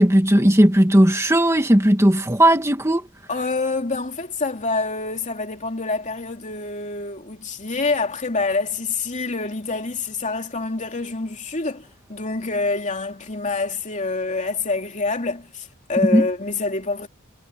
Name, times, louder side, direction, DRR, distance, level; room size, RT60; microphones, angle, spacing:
voice 1, 0.0-3.0 16.1-16.2, right 1 dB, 15° right, 2.1 m, -16 dB
voice 2, 3.3-17.1, left 3 dB, 35° left, 3.0 m, -26 dB
head